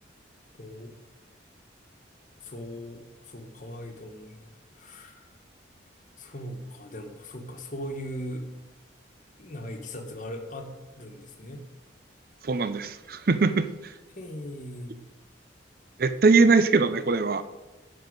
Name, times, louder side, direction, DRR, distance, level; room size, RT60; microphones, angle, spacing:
voice 1, 0.6-0.9 2.4-5.3 6.2-8.5 9.4-11.6 14.1-15.0, equal, 40° left, 3 dB, 1.3 m, -39 dB
voice 2, 12.4-13.9 16.0-17.4, right 4 dB, 50° right, 12 dB, 0.5 m, -22 dB
11.5 x 4.5 x 8.0 m, 1.1 s
head